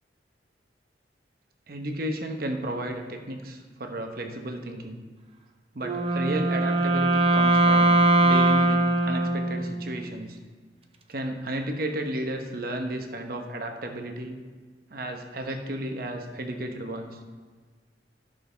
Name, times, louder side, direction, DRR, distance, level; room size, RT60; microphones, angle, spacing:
voice 1, 1.7-5.0 5.7-10.4 11.1-14.4 14.9-17.2, right 1 dB, 55° right, 4 dB, 1.0 m, -33 dB
Wind instrument woodwind instrument, 5.8-10.1, right 2 dB, 35° right, 0.7 m, -21 dB
13.5 x 6.3 x 3.4 m, 1.5 s
head